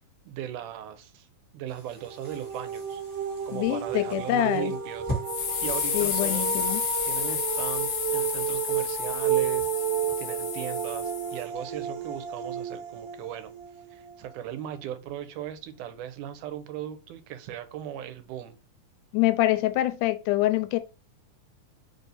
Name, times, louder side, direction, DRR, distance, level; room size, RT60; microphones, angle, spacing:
voice 1, 0.3-1.3 1.5-3.0 3.4-5.0 5.6-6.6 7.0-9.7 10.2-13.5 13.9-18.6, right 11 dB, 85° right, 2.1 m, -38 dB
sound 1, 1.7-10.1, right 1 dB, 20° left, 0.6 m, -43 dB
sound 2, 2.0-14.8, right 9 dB, 55° right, 1.9 m, -32 dB
voice 2, 3.5-4.7 5.9-6.8 19.1-20.8, left 15 dB, 85° left, 2.1 m, -25 dB
sound 3, 5.3-11.4, left 7 dB, 70° left, 1.7 m, -31 dB
4.8 x 2.7 x 3.9 m
omnidirectional pair, 3.6 m